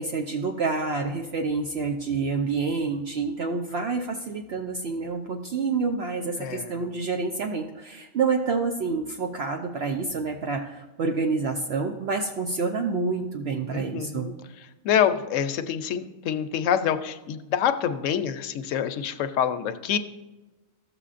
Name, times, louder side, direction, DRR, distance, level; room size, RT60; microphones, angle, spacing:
voice 1, 0.0-14.3, right 4 dB, 60° right, 3 dB, 0.8 m, -28 dB
voice 2, 13.7-14.3 14.8-20.0, left 9 dB, 75° left, 10 dB, 0.9 m, -26 dB
13.5 x 6.9 x 2.5 m, 1.1 s
omnidirectional pair, 1.4 m